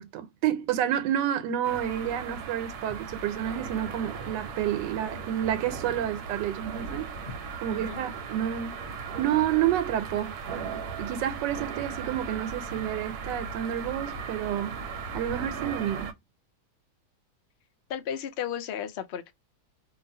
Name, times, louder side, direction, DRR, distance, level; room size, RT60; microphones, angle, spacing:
voice 1, 0.0-7.1 7.6-8.7 9.2-10.4 11.0-14.8 15.1-16.1, right 11 dB, 90° right, 1.2 m, -29 dB
sound 1, 1.6-16.1, right 5 dB, 70° right, 1.1 m, -37 dB
voice 2, 17.9-19.3, left 9 dB, 80° left, 0.5 m, -34 dB
2.8 x 2.4 x 2.6 m
omnidirectional pair, 1.8 m